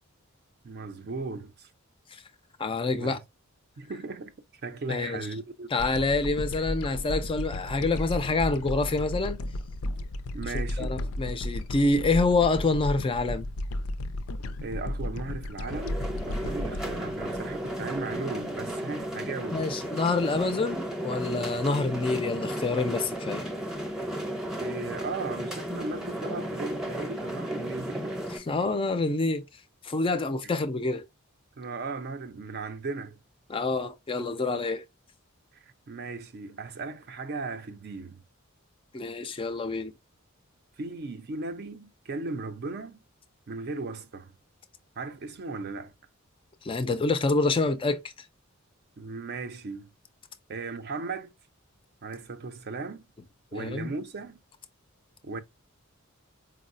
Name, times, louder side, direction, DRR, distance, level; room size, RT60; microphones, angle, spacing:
voice 1, 0.6-1.7 3.0-3.2 3.8-4.3 4.6-5.7 10.3-11.0 14.6-19.8 24.6-28.2 31.6-33.2 35.5-38.2 40.8-43.0 43.5-44.3 45.0-45.9 49.0-49.9 50.5-51.3 52.0-53.0 53.5-54.4 55.2-55.4, right 3 dB, 50° right, 0.5 m, -37 dB
voice 2, 2.6-3.2 4.9-5.3 5.7-9.4 10.8-13.5 19.5-23.4 28.3-29.4 29.8-31.1 33.5-34.8 38.9-39.9 46.6-48.0 53.6-53.9, left 3 dB, 25° left, 0.4 m, -27 dB
sound 1, 5.8-18.3, left 1 dB, 90° left, 0.4 m, -34 dB
sound 2, 15.7-28.4, equal, 5° right, 0.7 m, -34 dB
4.5 x 2.0 x 2.5 m
head